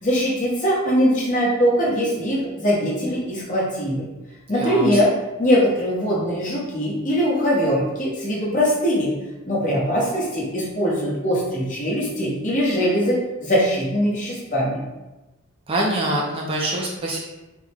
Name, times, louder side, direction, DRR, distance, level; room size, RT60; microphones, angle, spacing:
voice 1, 0.0-4.1 4.5-5.1 5.4-9.1 9.4-14.8, equal, 35° left, -5 dB, 0.9 m, -21 dB
voice 2, 4.6-5.0 15.7-17.2, right 1 dB, 25° right, -2 dB, 0.4 m, -24 dB
3.5 x 2.1 x 3.3 m, 1.1 s
head